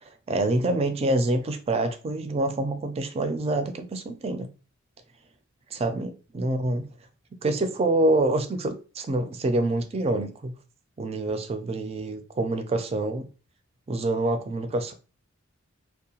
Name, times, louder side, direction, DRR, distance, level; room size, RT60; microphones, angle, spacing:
voice 1, 0.0-4.5 5.7-6.9 7.4-10.5 11.0-13.3 13.9-14.9, right 2 dB, 30° right, 0.4 m, -26 dB
2.7 x 2.1 x 2.8 m
head